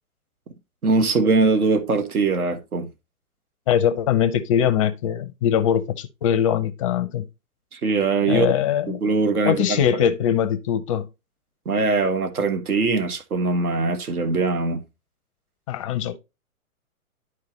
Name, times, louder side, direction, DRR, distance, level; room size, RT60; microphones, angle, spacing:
voice 1, 0.8-2.9 7.7-8.5 8.9-9.8 11.6-14.8, right 4 dB, 80° right, 1.6 m, -21 dB
voice 2, 3.7-7.3 8.3-9.0 9.5-11.1 15.7-16.2, left 9 dB, 25° left, 0.5 m, -22 dB
11.0 x 4.7 x 2.9 m
hypercardioid pair, 130°, 44 cm